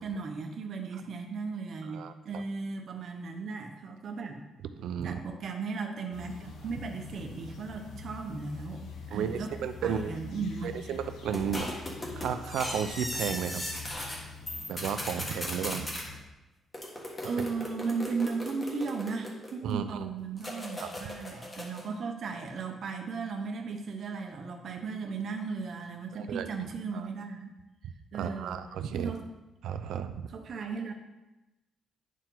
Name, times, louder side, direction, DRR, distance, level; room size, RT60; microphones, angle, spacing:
voice 1, 0.0-4.4 5.0-9.5 9.8-10.7 17.3-27.5 28.1-28.6 28.9-29.2 30.3-30.9, right 4 dB, 45° right, 3 dB, 0.8 m, -36 dB
voice 2, 1.9-2.4 4.8-5.2 9.1-10.1 10.6-11.7 12.2-13.6 14.7-15.9 19.6-20.1 20.8-20.9 26.1-26.5 26.9-27.1 28.1-29.1 29.6-30.3, right 8 dB, 75° right, 10 dB, 0.5 m, -33 dB
sound 1, 6.1-16.2, left 5 dB, 75° left, 1.3 m, -45 dB
sound 2, 11.3-14.2 14.5-16.0 16.7-19.7 20.4-21.9, left 1 dB, 15° left, 1.4 m, -38 dB
10.0 x 4.7 x 3.9 m, 1.0 s
cardioid pair, 165°, 0 cm